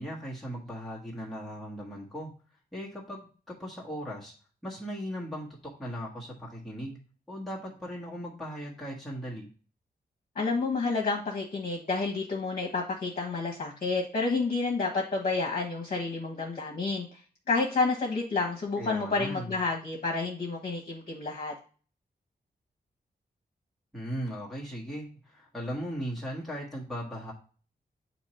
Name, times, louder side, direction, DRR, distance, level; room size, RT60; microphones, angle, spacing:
voice 1, 0.0-2.3 2.7-4.3 4.6-7.0 7.3-9.5 18.8-19.5 23.9-27.3, equal, ahead, -5 dB, 1.3 m, -38 dB
voice 2, 10.3-17.2 17.5-21.5, left 3 dB, 50° left, -1 dB, 1.1 m, -30 dB
8.1 x 2.9 x 4.3 m, 0.39 s
wide cardioid pair, 165°, 17 cm